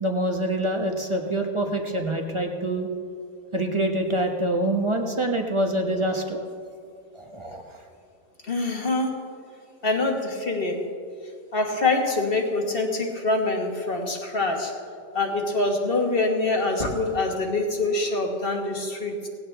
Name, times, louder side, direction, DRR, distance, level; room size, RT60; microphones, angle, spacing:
voice 1, 0.0-2.9 3.5-6.4 7.1-7.6, right 1 dB, 20° right, 2 dB, 0.9 m, -25 dB
voice 2, 8.5-9.2 9.8-10.8 11.5-14.7 15.1-19.3, left 2 dB, 35° left, 2 dB, 1.5 m, -25 dB
18.0 x 16.5 x 3.3 m, 2.3 s
omnidirectional pair, 1.9 m